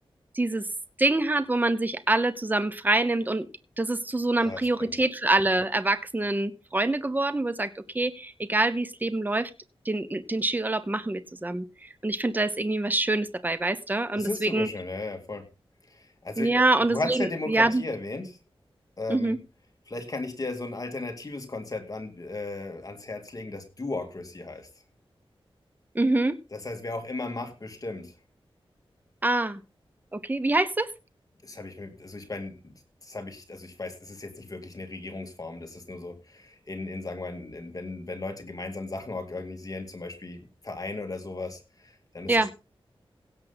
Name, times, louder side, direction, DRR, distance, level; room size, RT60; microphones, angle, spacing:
voice 1, 0.3-0.7 1.0-3.5 3.8-9.5 9.8-14.7 16.4-17.8 19.1-19.4 25.9-26.4 29.2-29.6 30.1-30.9 42.3-42.5, right 2 dB, 20° right, 12 dB, 0.9 m, -25 dB
voice 2, 4.4-5.0 14.2-15.5 15.9-16.6 16.9-18.4 19.0-19.4 19.9-24.7 26.5-28.1 31.4-32.7 33.0-42.5, left 2 dB, 40° left, 5 dB, 2.3 m, -36 dB
17.0 x 7.5 x 4.0 m, 0.30 s
wide cardioid pair, 115°, 10 cm